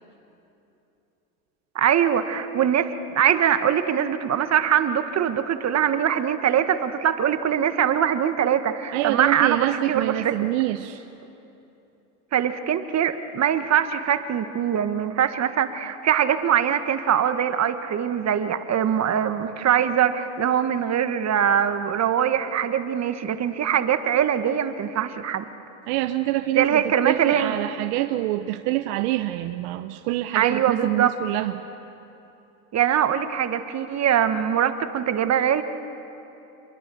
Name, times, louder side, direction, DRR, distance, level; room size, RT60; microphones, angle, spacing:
voice 1, 1.7-10.3 12.3-25.4 26.5-27.5 30.3-31.1 32.7-35.6, right 9 dB, 35° right, 9 dB, 1.5 m, -22 dB
voice 2, 8.9-11.1 25.9-31.6, right 15 dB, 65° right, 8 dB, 0.9 m, -26 dB
27.5 x 22.5 x 7.0 m, 2.9 s
hypercardioid pair, 90°, 44 cm